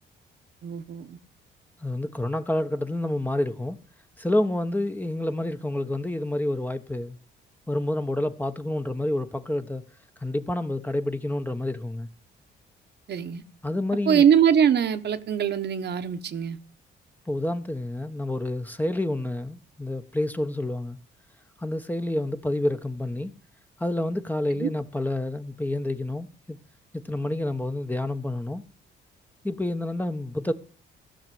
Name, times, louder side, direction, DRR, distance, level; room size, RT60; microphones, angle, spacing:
voice 1, 0.6-1.2 13.1-13.4 14.1-16.6 24.6-24.7, right 8 dB, 60° right, 1.2 m, -22 dB
voice 2, 1.8-3.8 4.2-7.2 7.7-9.8 10.2-12.1 13.6-14.2 17.3-21.0 21.6-23.3 23.8-26.6 26.9-28.6 29.4-30.5, left 1 dB, 10° left, 1.0 m, -28 dB
15.5 x 6.0 x 7.7 m
cardioid pair, 90°, 20 cm